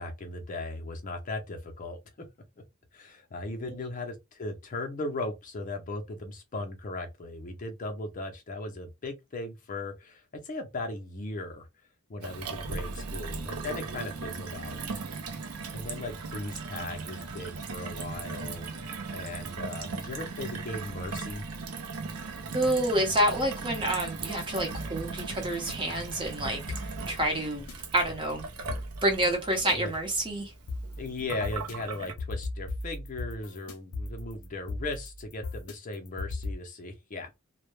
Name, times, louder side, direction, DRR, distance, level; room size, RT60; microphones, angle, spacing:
voice 1, 0.0-2.3 2.9-11.7 12.1-14.9 15.7-21.5 29.7-29.9 31.0-37.4, left 2 dB, 35° left, 0.5 m, -37 dB
Gurgling / Water tap faucet / Sink (filling or washing), 12.2-32.1, right 4 dB, 85° right, 0.6 m, -38 dB
voice 2, 22.5-27.7 27.9-28.5 29.0-30.5, right 1 dB, 20° right, 0.7 m, -28 dB
sound 1, 24.7-25.7 26.7-27.7 28.7-29.7 30.7-36.6, left 2 dB, 80° left, 0.6 m, -38 dB
2.1 x 2.0 x 3.1 m
head